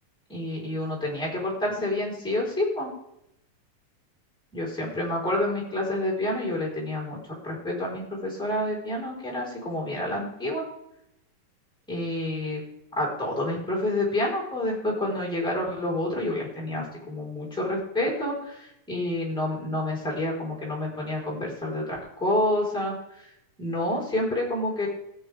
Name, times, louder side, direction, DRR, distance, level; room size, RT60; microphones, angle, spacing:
voice 1, 0.3-2.9 4.5-7.2 7.4-10.6 11.9-12.6 13.0-23.3 23.6-24.9, left 1 dB, ahead, -2 dB, 3.9 m, -28 dB
21.0 x 7.3 x 3.5 m, 0.82 s
omnidirectional pair, 4.1 m